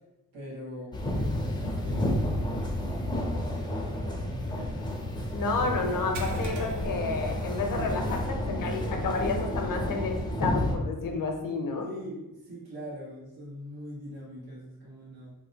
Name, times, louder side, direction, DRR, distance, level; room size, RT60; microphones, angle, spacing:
voice 1, 0.3-5.5 11.8-15.3, equal, 85° right, -6 dB, 1.2 m, -43 dB
sound 1, 0.9-10.8, left 1 dB, 15° left, 0.4 m, -31 dB
voice 2, 5.3-11.9, left 3 dB, 65° left, 3 dB, 0.6 m, -30 dB
sound 2, 6.1-8.0 8.4-8.6 9.1-9.2 10.8-10.9, right 4 dB, 55° right, 0.4 m, -45 dB
2.8 x 2.1 x 3.9 m, 0.95 s
wide cardioid pair, 110°, 36 cm